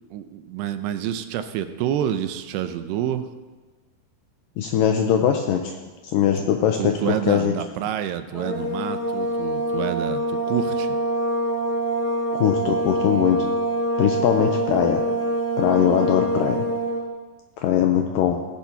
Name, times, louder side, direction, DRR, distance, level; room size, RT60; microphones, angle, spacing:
voice 1, 0.1-3.3 6.4-6.5 6.8-11.0, right 10 dB, 90° right, 9 dB, 2.7 m, -28 dB
voice 2, 4.6-5.7 6.1-7.6 12.3-13.4 14.0-15.0 15.6-16.7 17.6-18.4, left 9 dB, 85° left, 4 dB, 2.0 m, -21 dB
sound 1, 8.3-17.1, right 1 dB, 20° left, 1.2 m, -25 dB
17.5 x 10.0 x 2.8 m, 1.3 s
omnidirectional pair, 4.6 m